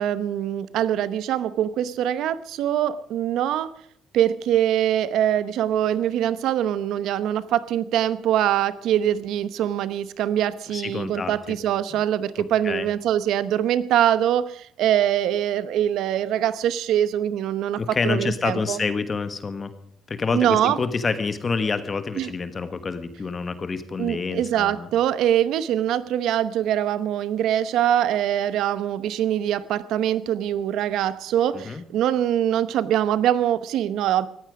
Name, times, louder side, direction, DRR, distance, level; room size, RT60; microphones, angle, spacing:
voice 1, 0.0-3.7 4.1-18.8 20.3-20.8 22.2-22.3 24.0-34.3, right 11 dB, 65° right, 16 dB, 1.0 m, -23 dB
voice 2, 10.7-11.6 11.9-12.0 12.6-12.9 17.7-19.7 20.1-24.9 31.5-31.8, left 4 dB, 25° left, 11 dB, 1.4 m, -27 dB
19.0 x 14.5 x 5.0 m, 0.69 s
cardioid pair, 175°, 0 cm